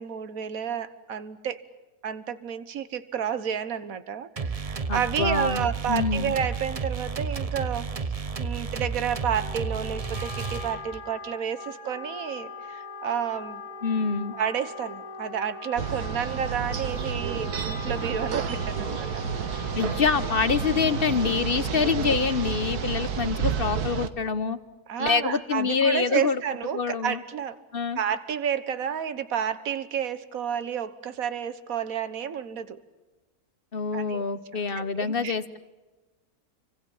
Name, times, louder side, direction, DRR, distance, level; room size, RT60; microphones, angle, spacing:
voice 1, 0.0-1.6 2.0-7.9 8.4-13.6 14.4-19.2 24.9-27.6 28.0-32.8 33.9-34.2 34.5-35.6, right 8 dB, 65° right, 13 dB, 1.7 m, -30 dB
sound 1, 4.4-11.1, right 5 dB, 30° right, 0.8 m, -32 dB
voice 2, 4.9-6.4 13.8-14.3 19.7-24.6 25.0-26.4 26.7-27.2 27.7-28.0 33.7-35.6, left 5 dB, 40° left, 13 dB, 1.1 m, -26 dB
Wind instrument woodwind instrument, 9.3-23.4, left 4 dB, 60° left, 2.2 m, -42 dB
sound 2, 15.8-24.1, right 6 dB, 80° right, 1.8 m, -30 dB
29.0 x 25.0 x 7.3 m, 1.2 s
omnidirectional pair, 1.6 m